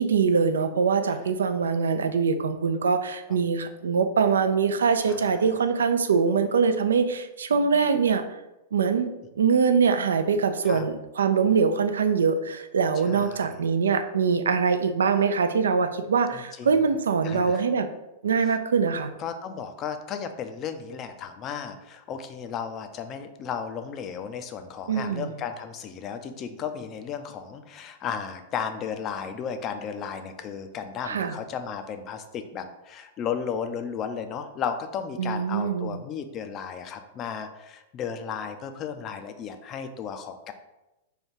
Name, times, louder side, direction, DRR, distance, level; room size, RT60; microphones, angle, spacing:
voice 1, 0.0-8.2 8.7-17.9 18.2-19.1 24.9-25.3 31.1-31.3 35.2-36.0, right 5 dB, 85° right, 9 dB, 0.3 m, -23 dB
voice 2, 13.0-13.5 16.3-16.7 17.2-17.6 19.2-40.5, left 7 dB, 35° left, 8 dB, 0.4 m, -34 dB
3.2 x 2.3 x 4.3 m, 0.97 s
hypercardioid pair, 110°, 0 cm